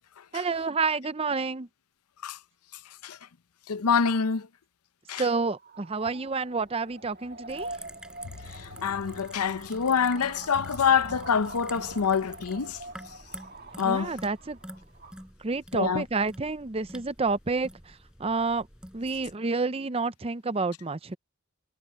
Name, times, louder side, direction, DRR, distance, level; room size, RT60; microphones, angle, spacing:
voice 1, 0.3-1.7 5.2-7.7 13.8-14.6 15.4-18.7 18.9-21.2, right 4 dB, 25° right, 0.6 m, -29 dB
voice 2, 3.7-4.5 5.1-5.2 8.6-12.8 13.8-14.1 15.7-16.0, left 6 dB, 90° left, 0.7 m, -26 dB
sound 1, 5.5-15.2, right 2 dB, 45° right, 1.9 m, -45 dB
sound 2, 7.5-19.4, right 1 dB, 5° right, 6.4 m, -47 dB
head